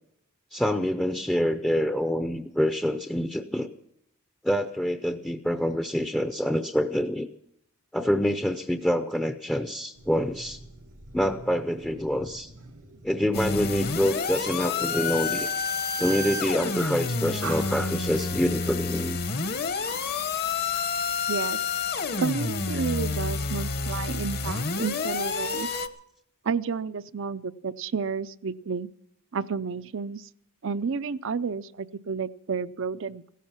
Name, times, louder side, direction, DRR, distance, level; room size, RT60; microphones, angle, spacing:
voice 1, 0.5-3.7 4.4-7.3 7.9-10.6 11.1-12.5 13.0-15.5 16.0-19.2, equal, 5° left, 7 dB, 0.6 m, -26 dB
sound 1, 9.9-16.9 17.4-18.3 18.9-20.5, right 4 dB, 80° right, 2.3 m, -43 dB
sound 2, 13.3-25.9, left 4 dB, 45° left, 1.0 m, -29 dB
voice 2, 21.3-21.6 22.2-25.7 26.4-28.9 29.3-30.3 30.6-33.2, right 5 dB, 60° right, 15 dB, 0.6 m, -31 dB
16.5 x 14.0 x 6.0 m, 0.76 s
head